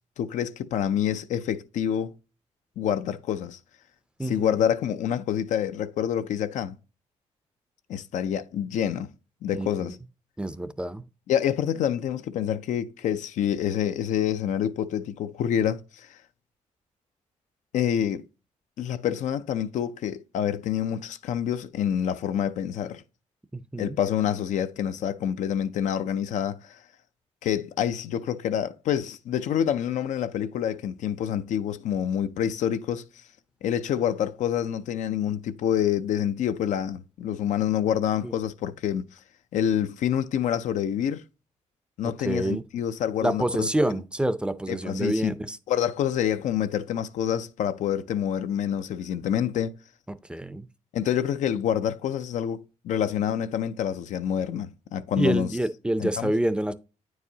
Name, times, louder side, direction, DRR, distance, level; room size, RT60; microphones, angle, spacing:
voice 1, 0.2-2.1 2.8-3.6 4.2-6.8 7.9-9.1 9.4-10.0 11.3-16.2 17.7-18.2 18.8-23.0 23.8-26.8 27.4-33.0 33.6-39.1 39.5-41.2 42.0-43.7 44.7-45.3 45.7-49.8 50.9-55.5 56.0-56.3, left 9 dB, 80° left, 0.5 m, -27 dB
voice 2, 4.2-4.6 9.5-9.9 10.4-11.0 23.5-24.0 38.2-38.3 42.2-42.6 43.2-45.6 50.1-50.7 55.2-56.7, right 1 dB, 10° right, 0.5 m, -27 dB
8.9 x 4.8 x 2.7 m
cardioid pair, 95°, 12 cm